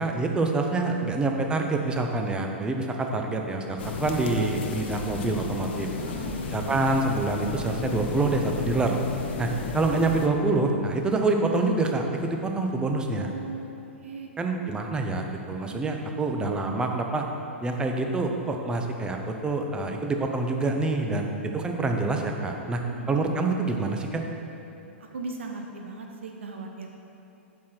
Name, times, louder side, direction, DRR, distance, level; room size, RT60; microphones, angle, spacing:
voice 1, 0.0-5.9 6.5-9.0 9.4-13.3 14.4-17.3 17.6-22.8 23.1-24.2, right 3 dB, 10° right, 3 dB, 0.7 m, -26 dB
sound 1, 3.8-10.3, left 5 dB, 55° left, 0.7 m, -33 dB
voice 2, 6.0-6.5 13.1-13.7 14.0-14.3 22.8-23.2 25.1-26.9, right 4 dB, 70° right, 2 dB, 0.7 m, -37 dB
7.4 x 5.8 x 4.4 m, 2.9 s
figure-of-eight pair, 110°, 7 cm